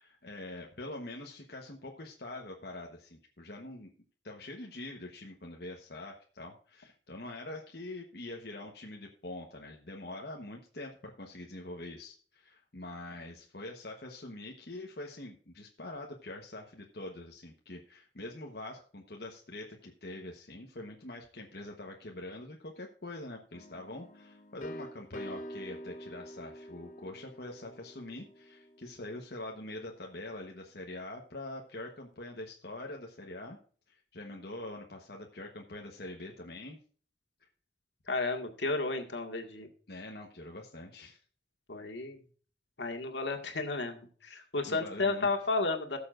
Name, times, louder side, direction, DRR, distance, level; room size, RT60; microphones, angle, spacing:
voice 1, 0.0-3.9 4.2-33.6 33.9-36.8 39.9-41.2 44.6-45.3, left 2 dB, 60° left, 1 dB, 1.2 m, -44 dB
sound 1, 23.5-29.2, equal, 45° left, 0.9 m, -47 dB
voice 2, 38.1-39.7 41.7-42.2 42.8-46.0, left 3 dB, 85° left, 4 dB, 1.8 m, -33 dB
18.0 x 7.0 x 2.5 m, 0.42 s
head